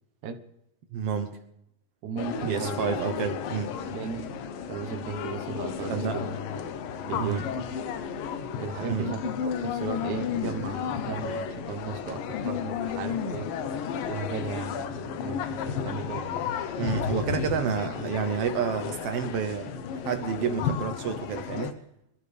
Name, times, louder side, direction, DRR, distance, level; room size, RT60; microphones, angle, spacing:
voice 1, 0.9-1.4 2.4-3.7 5.9-6.2 7.1-7.4 8.9-9.1 16.8-19.7 20.0-21.7, right 7 dB, 85° right, 7 dB, 1.3 m, -29 dB
voice 2, 2.0-2.9 3.5-4.3 4.7-6.3 7.0-7.7 8.6-13.5 14.1-16.4, right 5 dB, 65° right, 6 dB, 2.4 m, -36 dB
sound 1, 2.2-21.7, left 7 dB, 80° left, 2.7 m, -33 dB
25.5 x 13.0 x 3.5 m, 0.79 s
omnidirectional pair, 4.0 m